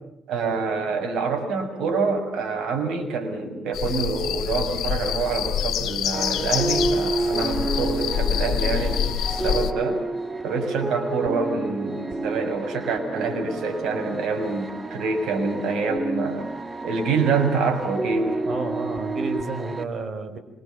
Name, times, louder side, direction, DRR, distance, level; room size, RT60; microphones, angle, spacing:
voice 1, 0.3-9.0 9.3-10.0 10.4-16.5 16.8-18.4, right 4 dB, 85° right, 3 dB, 6.8 m, -26 dB
sound 1, 3.7-9.7, left 9 dB, 80° left, 2.2 m, -26 dB
sound 2, 6.1-19.8, right 2 dB, 20° right, 1.8 m, -30 dB
voice 2, 18.5-20.4, right 3 dB, 45° right, 7 dB, 5.3 m, -31 dB
27.0 x 25.5 x 7.3 m, 0.83 s
cardioid pair, 120°, 0 cm